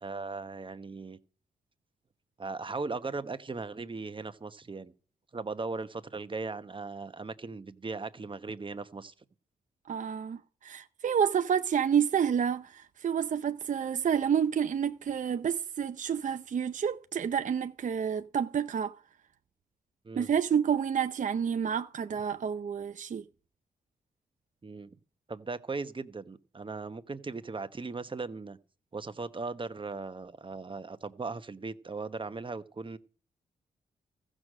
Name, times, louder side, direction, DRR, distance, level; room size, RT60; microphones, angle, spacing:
voice 1, 0.0-1.2 2.4-4.9 5.3-9.1 20.0-20.3 24.6-24.9 25.3-28.6 28.9-33.0, right 3 dB, 35° right, 1.0 m, -38 dB
voice 2, 9.9-18.9 20.2-23.2, right 8 dB, 55° right, 0.6 m, -29 dB
14.5 x 6.3 x 6.5 m
cardioid pair, 60°, 16 cm